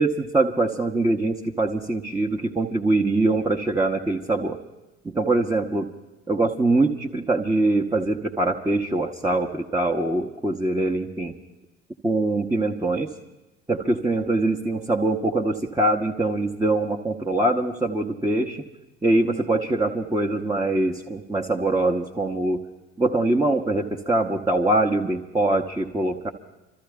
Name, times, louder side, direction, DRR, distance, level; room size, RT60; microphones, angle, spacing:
voice 1, 0.0-4.6 5.0-5.9 6.3-11.3 12.0-13.1 13.7-18.6 19.0-22.6 23.0-26.3, right 2 dB, 10° right, -1 dB, 0.9 m, -23 dB
25.5 x 13.5 x 3.5 m, 1.0 s
figure-of-eight pair, 60°, 37 cm